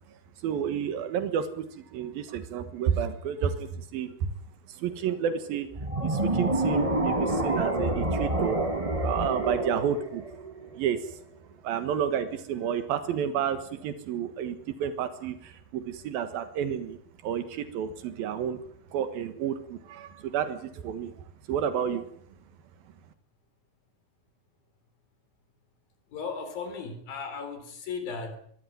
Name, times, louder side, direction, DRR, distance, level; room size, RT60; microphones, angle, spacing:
voice 1, 0.4-1.7 1.9-4.1 4.8-5.7 6.0-8.6 9.0-10.2 10.8-11.0 11.6-17.0 17.2-18.6 18.9-21.1 21.5-22.1, right 8 dB, 85° right, 10 dB, 3.3 m, -30 dB
sound 1, 5.7-11.0, right 2 dB, 20° right, 0.9 m, -28 dB
voice 2, 26.1-28.4, left 5 dB, 85° left, 8 dB, 5.5 m, -36 dB
22.5 x 14.5 x 9.4 m, 0.64 s
omnidirectional pair, 4.1 m